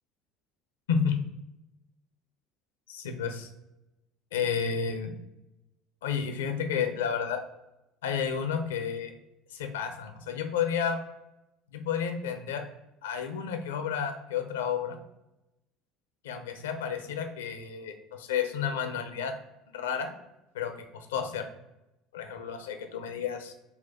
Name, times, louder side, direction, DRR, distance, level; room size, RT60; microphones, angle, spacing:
voice 1, 0.9-1.2 2.9-3.5 4.3-5.1 6.0-7.4 8.0-9.1 9.5-11.0 11.7-12.7 13.0-15.0 16.2-19.3 19.7-20.1 20.5-21.5 22.1-23.5, left 7 dB, 75° left, 7 dB, 0.4 m, -31 dB
4.1 x 2.3 x 3.9 m, 0.94 s
figure-of-eight pair, 65°, 0 cm